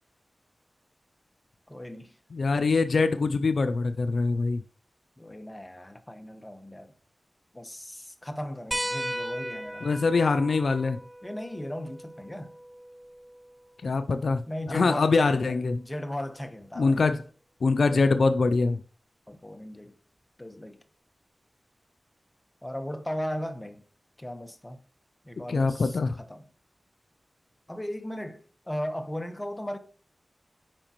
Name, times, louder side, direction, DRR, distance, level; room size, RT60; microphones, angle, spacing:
voice 1, 1.7-2.1 5.2-6.9 7.5-9.9 11.2-12.5 14.5-17.0 17.9-18.1 19.3-19.9 20.4-20.8 22.6-23.8 24.2-24.8 25.2-26.5 27.7-29.8, equal, 15° left, 1.0 m, -37 dB
voice 2, 2.3-4.6 9.8-11.0 13.8-14.4 14.7-15.8 16.8-17.2 17.6-18.8 25.5-26.2, left 4 dB, 80° left, 0.4 m, -24 dB
sound 1, 8.7-13.8 15.3-15.4 17.1-17.2, equal, 5° right, 0.4 m, -37 dB
8.8 x 5.1 x 3.0 m
cardioid pair, 50°, 0 cm